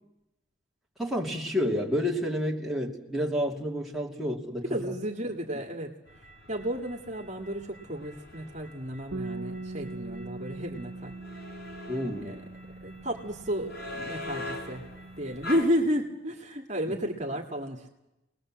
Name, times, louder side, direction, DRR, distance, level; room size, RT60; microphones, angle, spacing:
voice 1, 1.0-4.6 11.9-12.4, equal, ahead, -3 dB, 2.8 m, -29 dB
voice 2, 4.6-11.2 12.2-12.4 12.8-17.9, equal, 35° right, 2 dB, 2.2 m, -32 dB
sound 1, 6.1-15.7, left 2 dB, 55° left, 4.8 m, -43 dB
Bass guitar, 9.1-15.4, right 2 dB, 65° right, 1.1 m, -42 dB
28.0 x 20.0 x 7.6 m, 0.92 s
head